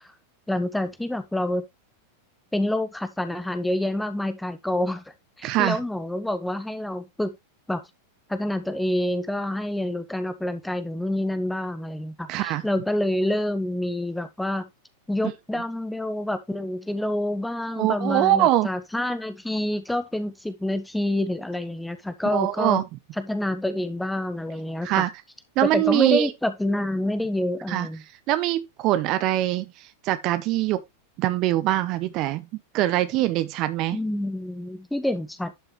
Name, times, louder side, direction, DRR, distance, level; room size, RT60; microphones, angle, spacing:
voice 1, 0.5-1.6 2.5-5.0 5.4-7.3 7.7-7.8 8.3-14.7 15.1-22.8 23.2-25.0 25.6-28.0 33.9-35.5, left 1 dB, 5° left, 1.0 m, -27 dB
voice 2, 5.4-5.8 12.3-12.6 17.8-18.7 22.3-22.8 24.8-25.1 25.6-26.3 27.7-27.9 28.3-29.7 30.0-30.8 31.2-32.4 32.7-34.0, right 14 dB, 40° right, 0.8 m, -23 dB
11.0 x 5.6 x 3.1 m
figure-of-eight pair, 90°, 0 cm